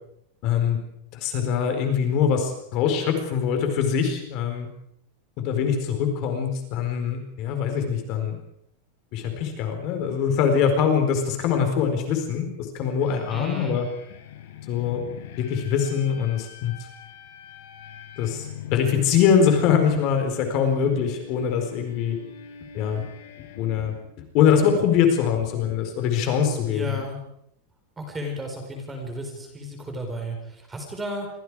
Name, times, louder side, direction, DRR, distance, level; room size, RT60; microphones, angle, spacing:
voice 1, 0.4-0.8 1.1-4.7 5.4-8.4 9.1-12.5 12.7-13.9 14.7-15.0 15.4-16.7 18.2-22.2 22.7-23.0 23.6-24.0 24.3-27.0, left 7 dB, 35° left, 5 dB, 4.4 m, -23 dB
sound 1, 13.0-24.1, left 8 dB, 60° left, 4.9 m, -43 dB
voice 2, 13.3-13.8 26.7-27.2 28.0-31.3, left 1 dB, 10° right, 3 dB, 4.6 m, -33 dB
28.0 x 24.5 x 4.9 m, 0.73 s
supercardioid pair, 180°, 0 cm